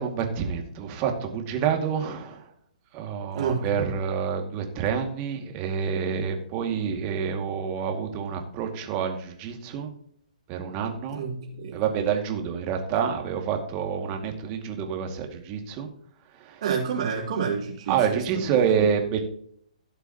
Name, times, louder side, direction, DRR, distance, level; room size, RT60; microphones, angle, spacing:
voice 1, 0.0-2.5 2.9-9.9 10.5-11.2 11.7-15.9 16.4-16.6 17.9-19.2, right 7 dB, 30° right, 3 dB, 2.2 m, -28 dB
voice 2, 3.3-3.9 11.1-11.8 16.6-18.3 18.5-18.9, right 6 dB, 55° right, -6 dB, 3.4 m, -29 dB
17.0 x 6.8 x 3.0 m, 0.63 s
figure-of-eight pair, 130°, 4 cm